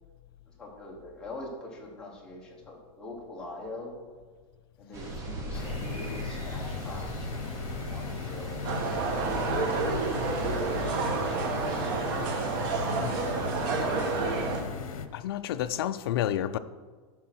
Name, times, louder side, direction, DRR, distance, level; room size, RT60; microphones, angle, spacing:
voice 1, 0.6-3.9 4.8-8.7 9.4-14.4, left 2 dB, 5° left, 1.3 m, -44 dB
sound 1, 4.9-10.8, right 2 dB, 15° right, 0.9 m, -39 dB
sound 2, 5.5-15.1, left 7 dB, 90° left, 0.8 m, -37 dB
sound 3, 8.6-14.6, right 4 dB, 40° right, 1.2 m, -29 dB
voice 2, 15.1-16.6, left 11 dB, 45° left, 0.4 m, -30 dB
10.5 x 3.8 x 6.2 m
supercardioid pair, 175°, 18 cm